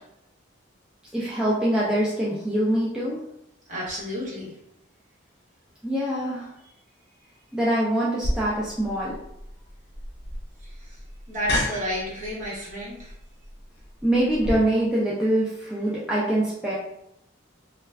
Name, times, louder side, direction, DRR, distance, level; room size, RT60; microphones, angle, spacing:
voice 1, 1.1-3.2 5.8-6.5 7.5-9.2 14.0-16.7, right 1 dB, 5° right, -8 dB, 0.4 m, -24 dB
voice 2, 3.7-4.5 10.6-10.7 11.3-13.1, equal, 40° right, -6 dB, 1.0 m, -31 dB
sound 1, 8.2-14.5, left 1 dB, 55° left, 0.6 m, -33 dB
2.3 x 2.2 x 3.2 m, 0.79 s
head